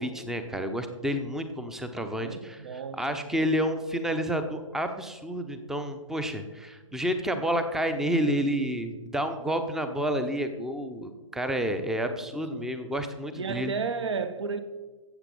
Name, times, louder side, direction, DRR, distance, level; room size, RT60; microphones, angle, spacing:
voice 1, 0.0-13.7, equal, ahead, 0.7 m, -30 dB
voice 2, 2.2-3.4 12.3-12.7 13.4-14.6, right 5 dB, 55° right, 1.2 m, -33 dB
14.0 x 8.1 x 5.3 m
figure-of-eight pair, 125°, 17 cm